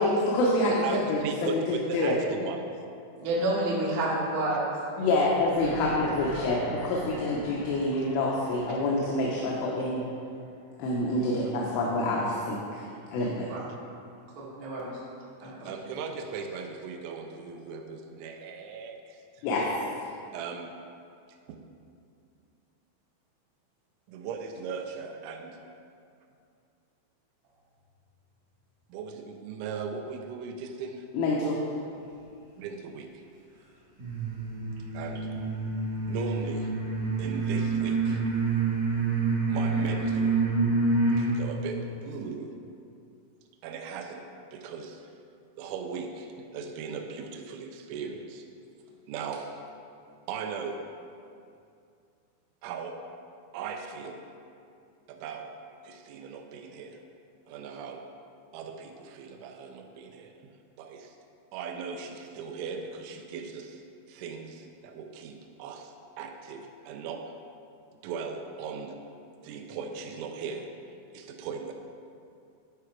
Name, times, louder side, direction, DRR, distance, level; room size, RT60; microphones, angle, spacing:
voice 1, 0.0-2.2 5.0-10.0 10.8-12.8 13.1-13.5 19.4-20.1 31.1-31.6, left 2 dB, 85° left, -3 dB, 3.3 m, -27 dB
voice 2, 0.6-2.7 5.0-5.3 5.7-5.8 15.6-19.5 20.3-20.7 21.5-21.6 24.1-25.6 28.9-31.1 32.6-33.3 34.9-35.4 36.1-36.7 37.2-38.2 39.5-40.4 41.2-42.6 43.6-45.1 45.6-48.4 49.1-49.5 50.3-50.9 52.6-53.0 53.5-54.3 55.1-55.5 55.8-57.0 57.5-58.1 58.5-61.2 61.5-63.8 64.1-67.3 68.0-69.0 69.4-71.7, right 5 dB, 85° right, 3 dB, 2.8 m, -38 dB
voice 3, 3.2-4.7 13.5-13.6 14.3-14.9 15.4-15.7, right 1 dB, 65° right, -7 dB, 1.2 m, -29 dB
sound 1, 5.3-10.4 10.7-10.8, equal, 60° left, 1.8 m, -41 dB
sound 2, 34.0-41.4, right 3 dB, 45° right, 2.7 m, -27 dB
11.0 x 4.8 x 4.4 m, 2.5 s
omnidirectional pair, 5.5 m